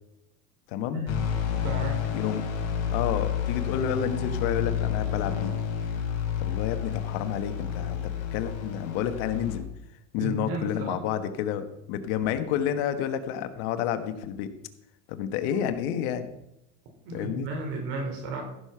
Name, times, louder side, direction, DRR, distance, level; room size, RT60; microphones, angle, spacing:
voice 1, 0.7-1.1 2.1-2.4 2.9-5.6 6.4-8.0 8.3-9.7 10.1-14.5 15.1-16.3 17.1-17.5, left 9 dB, 75° left, 9 dB, 1.4 m, -30 dB
sound 1, 1.1-9.6, left 8 dB, 50° left, 3.5 m, -30 dB
voice 2, 1.5-2.1 10.2-11.0 17.0-18.4, right 2 dB, 75° right, 2 dB, 4.3 m, -33 dB
15.0 x 6.7 x 5.8 m, 0.86 s
supercardioid pair, 125°, 32 cm